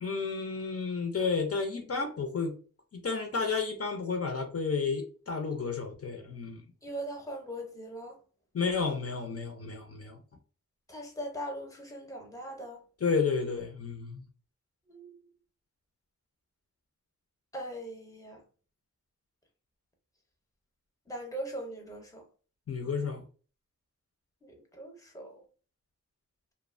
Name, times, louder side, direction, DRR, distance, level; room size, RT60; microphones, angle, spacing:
voice 1, 0.0-2.5 2.9-6.6 8.5-10.2 13.0-14.2 22.7-23.2, left 5 dB, 50° left, 0.5 m, -31 dB
voice 2, 6.8-8.2 10.9-12.8 14.9-15.2 17.5-18.4 21.1-22.2 24.4-25.4, right 1 dB, 10° left, 0.6 m, -40 dB
2.6 x 2.1 x 2.4 m
wide cardioid pair, 85°, 30 cm